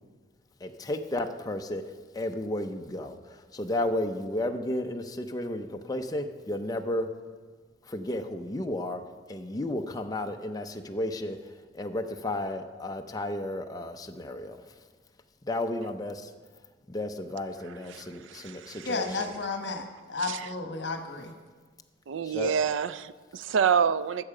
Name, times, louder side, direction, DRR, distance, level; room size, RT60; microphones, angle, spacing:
voice 1, 0.6-1.8 2.1-7.1 7.9-9.0 9.3-11.4 11.7-14.6 15.5-16.3 16.9-19.3 22.2-22.5, left 1 dB, 20° left, 5 dB, 0.6 m, -33 dB
voice 2, 17.6-18.9 20.3-20.5 22.1-24.2, right 7 dB, 85° right, 15 dB, 0.4 m, -28 dB
voice 3, 18.8-21.3, left 3 dB, 65° left, 5 dB, 1.1 m, -33 dB
14.0 x 6.6 x 4.9 m, 1.4 s
head